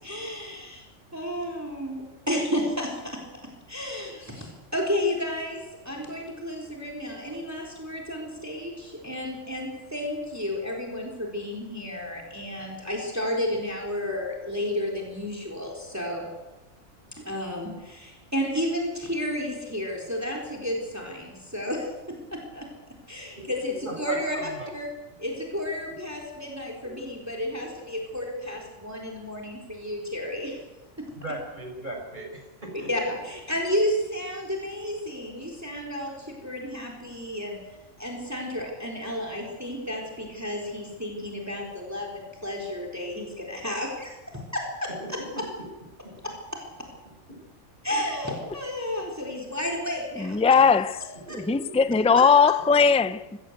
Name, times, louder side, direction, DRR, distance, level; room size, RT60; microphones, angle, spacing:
voice 1, 0.0-0.8 1.1-3.2 3.7-16.3 17.2-22.7 23.1-24.9 25.2-30.6 31.0-31.1 32.9-37.6 38.0-45.4 46.2-46.6 47.8-50.4 51.3-51.4 52.2-52.3, left 1 dB, 10° right, 3.8 m, -32 dB
voice 2, 23.3-24.7 31.1-32.9 45.0-45.6 47.3-47.4 51.3-51.6, right 1 dB, 35° right, 6.6 m, -37 dB
voice 3, 50.2-51.0 51.3-53.4, left 5 dB, 10° left, 0.3 m, -19 dB
23.5 x 16.5 x 7.9 m
omnidirectional pair, 1.3 m